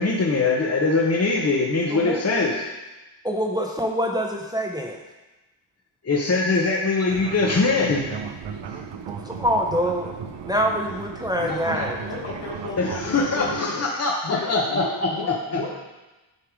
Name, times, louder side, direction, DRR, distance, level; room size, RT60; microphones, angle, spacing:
voice 1, 0.0-2.7 6.0-8.0 12.8-15.8, left 3 dB, 30° left, -2 dB, 1.0 m, -22 dB
voice 2, 3.2-5.0 9.2-10.1 10.5-12.0, equal, 10° right, 0 dB, 0.9 m, -25 dB
Fixed-wing aircraft airplane, 7.1-13.6, right 7 dB, 65° right, 0.7 m, -36 dB
voice 3, 11.4-13.8 14.2-15.8, left 3 dB, 60° left, -4 dB, 2.1 m, -33 dB
9.3 x 3.4 x 4.9 m, 1.1 s
cardioid pair, 65°, 46 cm